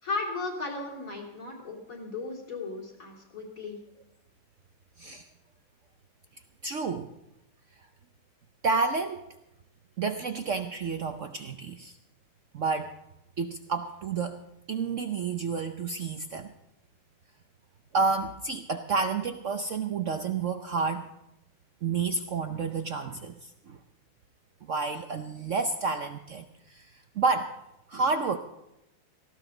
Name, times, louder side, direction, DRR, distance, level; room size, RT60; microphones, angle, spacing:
voice 1, 0.0-3.8, left 3 dB, 40° left, 0 dB, 3.6 m, -35 dB
voice 2, 5.0-5.3 6.6-7.1 8.6-9.3 10.0-12.0 12.5-12.9 13.4-14.4 14.7-16.5 17.9-21.1 21.8-23.8 24.6-27.5 27.9-28.4, right 4 dB, 65° right, 7 dB, 0.7 m, -30 dB
18.0 x 15.0 x 3.9 m, 0.85 s
omnidirectional pair, 2.2 m